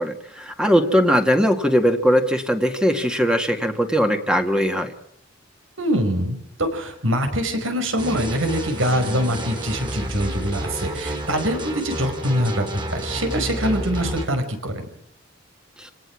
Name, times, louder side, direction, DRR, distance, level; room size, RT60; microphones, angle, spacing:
voice 1, 0.0-4.9 15.8-15.9, equal, 5° right, 5 dB, 1.8 m, -20 dB
voice 2, 5.8-12.7 12.9-14.7, equal, 80° right, 7 dB, 5.2 m, -24 dB
sound 1, 8.0-14.3, equal, 25° right, 3.8 m, -30 dB
27.5 x 18.5 x 6.1 m, 0.73 s
head